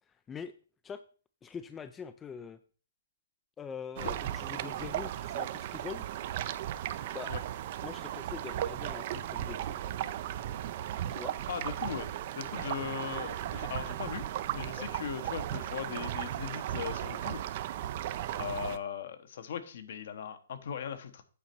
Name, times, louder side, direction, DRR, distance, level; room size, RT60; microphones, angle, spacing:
voice 1, 0.1-0.5 0.8-1.0 1.4-2.6 3.6-6.1 7.1-7.3 7.8-9.8 11.1-11.4 14.8-14.9, left 6 dB, 15° left, 11 dB, 0.4 m, -43 dB
sound 1, 4.0-18.8, right 12 dB, 45° right, 0.5 m, -36 dB
voice 2, 11.5-12.1 12.3-14.3 14.5-17.4 18.3-21.2, left 8 dB, 60° left, 10 dB, 1.2 m, -39 dB
8.6 x 4.1 x 6.0 m, 0.40 s
hypercardioid pair, 140°, 0 cm